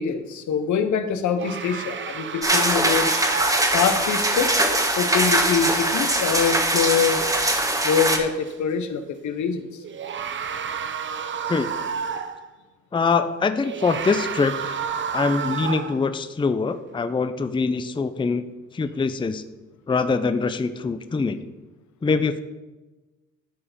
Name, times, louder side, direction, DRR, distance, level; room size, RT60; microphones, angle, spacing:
voice 1, 0.0-3.3 3.7-4.5 5.0-7.2 7.8-9.7, left 6 dB, 75° left, 9 dB, 1.0 m, -24 dB
sound 1, 1.4-4.2 8.4-8.5 9.8-12.5 13.6-16.1, right 7 dB, 40° right, 0.7 m, -31 dB
sound 2, 2.4-8.2, right 1 dB, 10° right, 1.2 m, -22 dB
voice 2, 12.9-14.8 15.1-18.4 18.7-19.4 19.9-21.4 22.0-22.4, left 4 dB, 15° left, 10 dB, 0.5 m, -23 dB
12.5 x 4.9 x 5.1 m, 1.2 s
cardioid pair, 90°, 30 cm